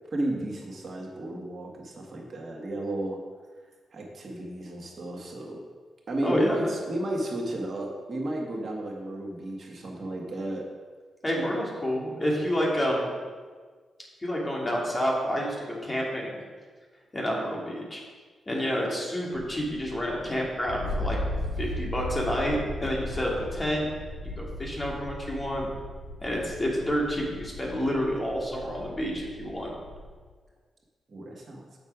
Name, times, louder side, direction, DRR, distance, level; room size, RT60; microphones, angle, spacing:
voice 1, 0.1-3.2 3.9-5.6 6.1-10.6 31.1-31.6, right 1 dB, 55° right, -1 dB, 1.6 m, -33 dB
voice 2, 11.2-13.1 14.2-16.4 17.1-18.0 18.5-21.2 21.6-23.9 24.2-25.7 26.2-29.7, equal, 30° left, -3 dB, 2.6 m, -29 dB
sound 1, 19.3-30.1, left 1 dB, 65° left, 1.8 m, -37 dB
7.2 x 5.7 x 5.0 m, 1.5 s
supercardioid pair, 50°, 0 cm